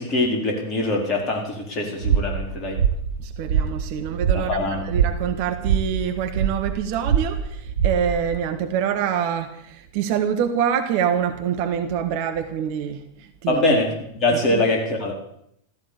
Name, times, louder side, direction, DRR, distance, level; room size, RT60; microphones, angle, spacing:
voice 1, 0.0-2.8 4.3-4.8 13.5-15.1, left 2 dB, 30° left, 4.4 m, -23 dB
sound 1, 2.0-8.4, right 7 dB, 70° right, 1.3 m, -24 dB
voice 2, 3.2-13.6 14.5-14.6, right 8 dB, 45° right, 1.6 m, -25 dB
14.5 x 14.5 x 7.0 m
figure-of-eight pair, 90°, 0 cm